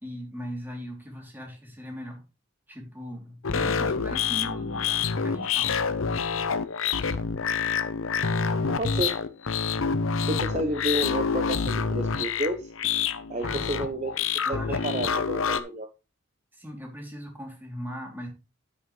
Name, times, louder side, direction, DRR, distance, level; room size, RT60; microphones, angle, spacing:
voice 1, 0.0-2.2 2.7-6.0 13.4-13.7 14.4-15.0 16.5-18.3, equal, 10° right, 0 dB, 2.9 m, -39 dB
sound 1, 3.4-15.6, left 6 dB, 75° left, 0.8 m, -27 dB
voice 2, 8.8-9.2 10.3-12.7 13.3-15.9, right 1 dB, 35° right, 6 dB, 0.8 m, -31 dB
10.0 x 8.5 x 3.2 m, 0.30 s
head